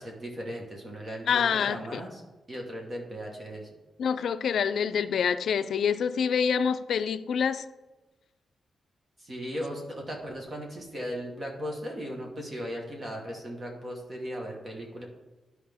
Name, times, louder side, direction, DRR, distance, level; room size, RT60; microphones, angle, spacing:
voice 1, 0.0-2.2 2.5-3.7 9.2-15.1, equal, 30° right, 0 dB, 1.2 m, -37 dB
voice 2, 1.3-2.0 4.0-7.6, left 7 dB, 65° left, 12 dB, 0.4 m, -26 dB
12.5 x 4.7 x 3.5 m, 1.1 s
wide cardioid pair, 175°, 0 cm